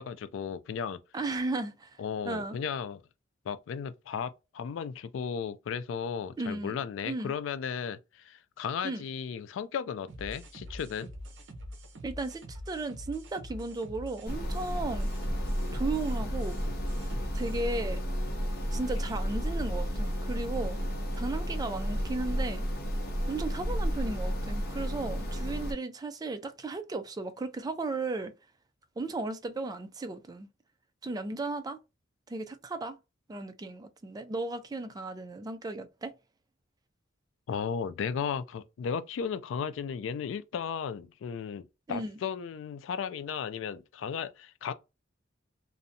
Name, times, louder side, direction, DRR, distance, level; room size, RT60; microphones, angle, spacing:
voice 1, 0.0-1.0 2.0-3.0 3.5-11.1 37.5-44.7, left 7 dB, 70° left, 0.3 m, -35 dB
voice 2, 1.1-2.0 2.2-2.6 6.4-6.8 7.0-7.3 8.8-9.0 12.0-15.1 15.7-16.6 17.3-18.0 18.7-20.8 21.1-22.6 23.3-28.3 29.0-30.5 31.0-31.8 32.3-33.0 33.3-36.1 41.9-42.2, right 3 dB, 20° right, 0.3 m, -35 dB
sound 1, 10.1-17.6, equal, 70° right, 0.6 m, -45 dB
sound 2, 14.3-25.7, equal, 55° left, 0.7 m, -32 dB
2.6 x 2.1 x 2.5 m
head